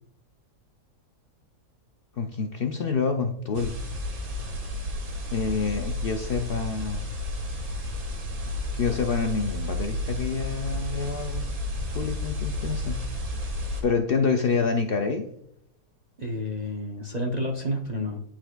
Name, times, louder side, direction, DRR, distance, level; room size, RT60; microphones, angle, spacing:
voice 1, 2.2-3.8 5.3-7.1 8.7-11.5 11.9-13.0 13.8-15.3, left 5 dB, 75° left, 4 dB, 0.5 m, -27 dB
sound 1, 3.5-13.8, left 1 dB, 70° right, 1.9 m, -32 dB
voice 2, 16.2-18.2, left 1 dB, 50° right, 0 dB, 0.5 m, -30 dB
11.0 x 4.4 x 2.2 m, 0.75 s
omnidirectional pair, 1.6 m